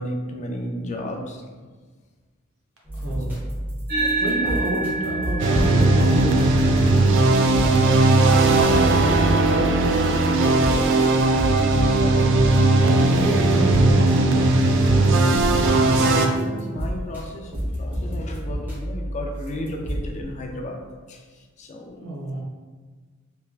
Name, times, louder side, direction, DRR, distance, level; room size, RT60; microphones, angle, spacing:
voice 1, 0.0-1.7 3.3-3.4 3.9-4.8 5.5-5.6 8.3-8.4 11.8-12.3 12.7-13.4 16.0-20.8 21.1-22.1, left 1 dB, 35° left, 2 dB, 0.4 m, -34 dB
sound 1, 2.9-12.7 13.3-15.8 16.3-20.2, equal, 10° right, 0.9 m, -31 dB
voice 2, 3.0-3.4 4.2-5.4 5.7-7.1 12.2-12.6 13.1-16.2 22.0-22.4, right 1 dB, 90° right, -3 dB, 0.9 m, -29 dB
sound 2, 3.9-12.6, right 2 dB, 45° right, 1.1 m, -31 dB
sound 3, 5.4-16.3, right 2 dB, 65° right, 0.4 m, -18 dB
3.4 x 3.2 x 2.4 m, 1.4 s
head